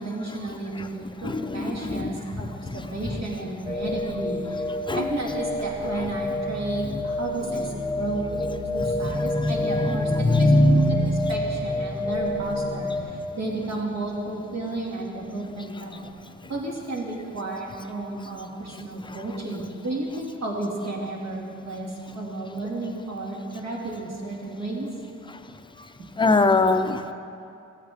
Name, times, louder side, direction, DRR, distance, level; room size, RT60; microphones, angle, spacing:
voice 1, 0.0-10.5 11.1-16.0 16.5-24.9 26.0-26.1, right 2 dB, 60° right, -2 dB, 2.2 m, -33 dB
voice 2, 1.2-3.1 4.9-5.1 6.0-6.1 6.9-7.0 8.4-8.5 8.8-11.3 11.9-12.1 16.4-16.5 18.7-19.2 25.3-25.5 25.8-25.9 26.2-27.1, left 2 dB, 15° left, 8 dB, 0.6 m, -24 dB
sound 1, 3.6-13.0, left 1 dB, 5° right, 1.4 m, -29 dB
15.0 x 8.6 x 3.5 m, 2.5 s
cardioid pair, 90°, 30 cm